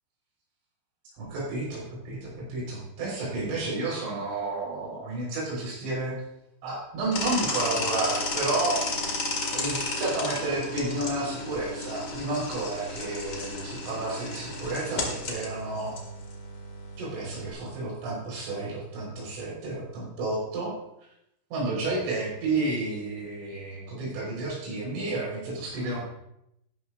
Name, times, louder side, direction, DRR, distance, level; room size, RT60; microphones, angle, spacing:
voice 1, 1.2-6.2 6.6-15.9 17.0-20.7 21.5-26.0, right 2 dB, 80° right, -4 dB, 6.4 m, -31 dB
sound 1, 7.1-17.5, left 3 dB, 85° left, 1.0 m, -33 dB
13.0 x 11.5 x 2.4 m, 0.80 s
omnidirectional pair, 5.5 m